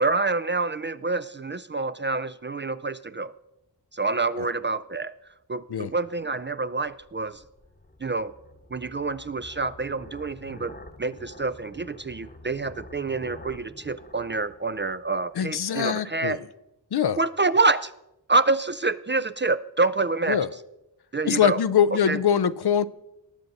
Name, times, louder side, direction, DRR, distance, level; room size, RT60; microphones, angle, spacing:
voice 1, 0.0-3.3 3.9-5.1 5.5-7.4 8.0-8.3 8.7-10.7 11.0-16.4 17.2-17.9 18.3-20.4 21.1-21.6 22.1-22.2, right 3 dB, 25° right, 14 dB, 0.3 m, -27 dB
sound 1, 6.0-15.6, left 2 dB, 20° left, 1.1 m, -48 dB
voice 2, 15.4-16.4 16.9-17.2 20.3-20.5 21.2-22.9, left 8 dB, 60° left, 16 dB, 0.6 m, -23 dB
19.5 x 6.7 x 4.0 m, 0.89 s
cardioid pair, 50°, 46 cm